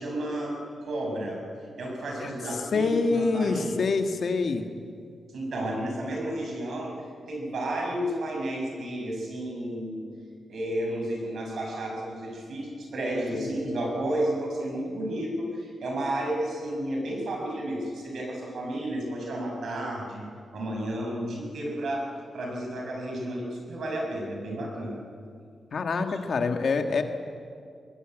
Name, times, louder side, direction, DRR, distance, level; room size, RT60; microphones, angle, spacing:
voice 1, 0.0-1.4 1.8-3.8 5.3-10.1 10.5-20.3 20.5-25.0 26.1-26.2, right 1 dB, 65° right, 1 dB, 6.1 m, -32 dB
voice 2, 2.7-4.7 13.4-13.5 25.7-27.0, left 4 dB, 50° left, 6 dB, 1.8 m, -26 dB
21.5 x 21.5 x 9.0 m, 2.2 s
wide cardioid pair, 160°, 0 cm